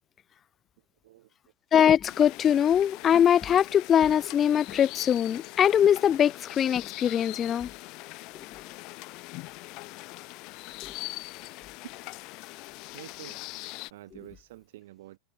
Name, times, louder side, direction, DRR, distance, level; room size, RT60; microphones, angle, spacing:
voice 1, 0.8-1.3 12.9-13.6 13.9-15.2, right 16 dB, 70° right, 5.6 m, -49 dB
voice 2, 1.7-7.7, left 9 dB, 30° left, 1.0 m, -22 dB
sound 1, 2.0-13.9, left 24 dB, 50° left, 3.4 m, -42 dB
hypercardioid pair, 120°, 0 cm